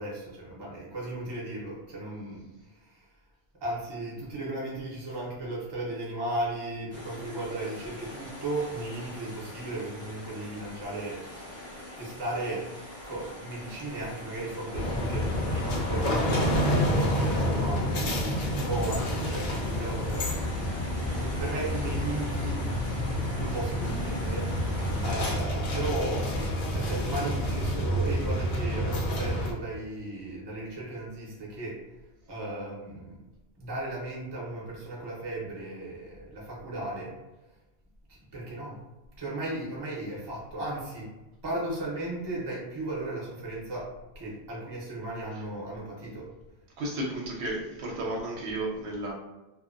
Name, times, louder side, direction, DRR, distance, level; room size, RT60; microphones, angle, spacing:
voice 1, 0.0-3.1 3.6-11.4 12.0-12.7 13.0-20.3 20.9-22.6 22.9-24.5 25.0-31.8 32.3-33.3 33.6-37.2 38.1-38.8 39.2-41.1 41.4-46.3, right 2 dB, 25° right, -5 dB, 0.7 m, -36 dB
sound 1, 6.9-25.4, left 1 dB, 15° left, 0.7 m, -43 dB
sound 2, 14.7-29.5, equal, 55° left, 0.6 m, -28 dB
voice 2, 46.8-49.1, right 1 dB, 75° right, -2 dB, 0.9 m, -33 dB
2.6 x 2.2 x 2.5 m, 1.1 s
omnidirectional pair, 1.1 m